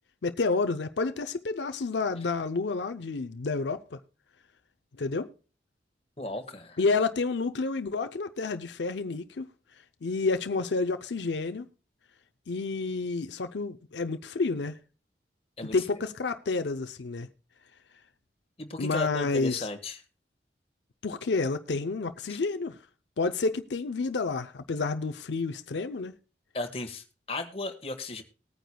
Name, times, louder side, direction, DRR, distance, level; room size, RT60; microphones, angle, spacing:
voice 1, 0.2-4.0 5.0-5.3 6.8-9.5 10.0-11.7 12.5-14.8 15.7-17.3 18.8-19.7 21.0-22.8 23.2-26.1, left 3 dB, 85° left, 0.6 m, -29 dB
voice 2, 6.2-6.8 15.6-16.0 18.6-20.0 22.3-22.4 26.5-28.2, left 2 dB, 35° left, 1.5 m, -36 dB
19.5 x 9.2 x 2.2 m
head